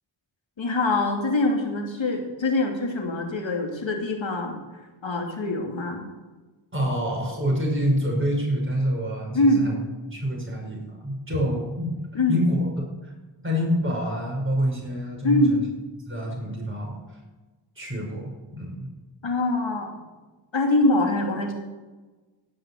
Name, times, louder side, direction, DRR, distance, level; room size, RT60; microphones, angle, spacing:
voice 1, 0.6-4.6 5.0-6.1 9.3-9.7 12.1-12.4 15.2-15.6 19.2-19.9 20.5-21.5, left 2 dB, 85° left, 2 dB, 2.7 m, -23 dB
voice 2, 6.7-9.7 10.1-11.9 12.3-13.1 13.4-15.6 16.1-16.9 17.8-18.9, equal, 25° right, -1 dB, 5.3 m, -27 dB
17.0 x 5.9 x 8.5 m, 1.2 s
wide cardioid pair, 70°, 45 cm